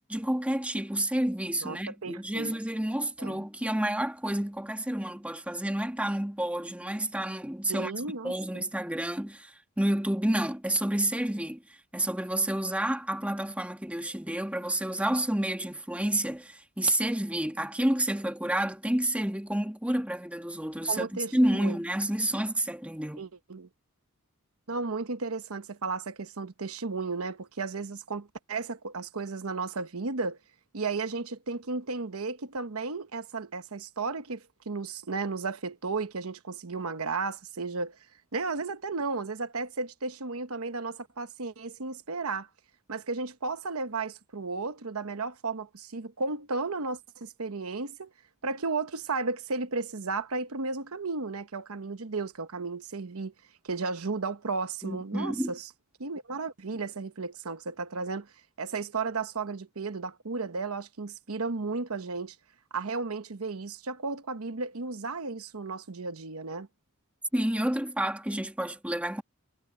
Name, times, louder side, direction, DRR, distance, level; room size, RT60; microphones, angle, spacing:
voice 1, 0.1-7.9 8.2-11.6 11.9-23.3 54.8-55.5 67.3-69.2, right 1 dB, 5° right, 1.9 m, -29 dB
voice 2, 1.6-2.6 3.2-3.4 7.7-8.6 20.9-21.8 23.2-23.7 24.7-30.4 30.7-38.0 38.3-42.5 42.9-48.1 48.4-53.3 53.6-55.7 56.0-58.3 58.6-62.4 62.7-66.7, right 4 dB, 75° right, 1.0 m, -34 dB
head